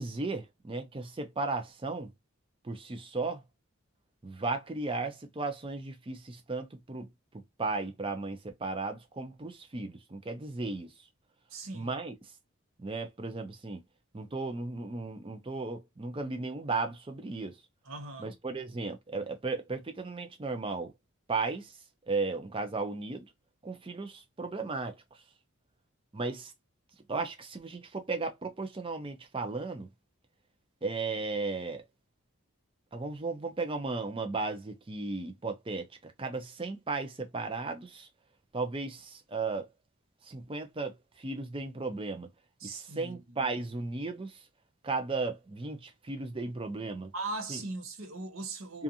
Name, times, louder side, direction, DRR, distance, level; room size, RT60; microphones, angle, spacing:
voice 1, 0.0-2.1 2.6-3.4 4.2-7.1 7.6-10.9 11.7-12.1 12.8-13.8 14.1-17.6 18.2-20.9 21.3-21.7 22.1-23.3 23.6-25.0 26.1-26.5 27.1-29.9 30.8-31.8 32.9-38.1 38.5-39.7 40.3-42.3 42.6-44.4 44.8-47.1 47.5-47.6 48.7-48.8, right 3 dB, 25° right, 0.5 m, -35 dB
voice 2, 11.5-11.9 17.9-18.3 42.6-43.5 47.1-48.8, right 3 dB, 65° right, 0.8 m, -39 dB
2.5 x 2.4 x 2.6 m
head